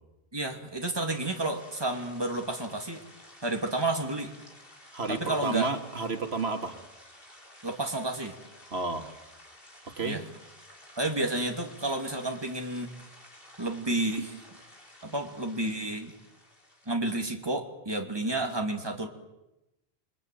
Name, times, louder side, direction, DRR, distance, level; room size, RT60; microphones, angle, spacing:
voice 1, 0.3-3.0 3.4-4.3 5.1-5.7 7.6-8.3 10.0-10.2 11.0-12.9 13.6-14.4 15.0-16.1 16.9-19.1, right 2 dB, 25° right, 3 dB, 2.8 m, -31 dB
sound 1, 1.1-16.9, left 1 dB, 60° left, 4.8 m, -53 dB
voice 2, 4.9-6.8 8.7-9.1 10.0-10.2, right 3 dB, 75° right, 5 dB, 2.3 m, -31 dB
28.5 x 22.5 x 9.3 m, 0.97 s
omnidirectional pair, 1.1 m